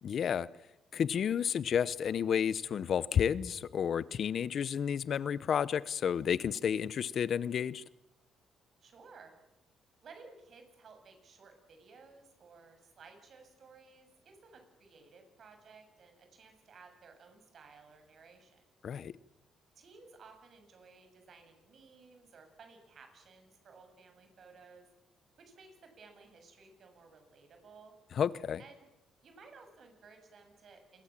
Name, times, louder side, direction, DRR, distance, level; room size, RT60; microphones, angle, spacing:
voice 1, 0.0-0.5 0.9-7.8 18.8-19.1 28.1-28.6, left 8 dB, 60° left, 0.8 m, -31 dB
voice 2, 8.8-9.3 10.0-18.7 19.8-24.9 25.4-27.9 28.6-28.9 29.2-31.0, right 4 dB, 55° right, 7.5 m, -57 dB
27.5 x 22.5 x 7.5 m
cardioid pair, 90°, 0 cm